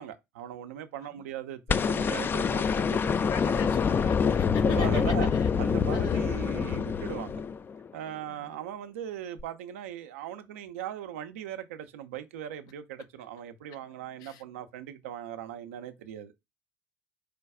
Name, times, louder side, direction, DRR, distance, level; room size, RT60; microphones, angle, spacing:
voice 1, 0.0-3.7 4.7-5.3 5.6-7.4 7.9-16.3, right 10 dB, 80° right, 0.6 m, -39 dB
sound 1, 1.7-7.9 9.4-9.5, left 6 dB, 30° left, 0.3 m, -26 dB
voice 2, 3.3-5.5 5.9-6.2 8.3-8.6 14.2-14.4, left 9 dB, 65° left, 0.7 m, -40 dB
4.9 x 2.3 x 4.7 m
hypercardioid pair, 70°, 7 cm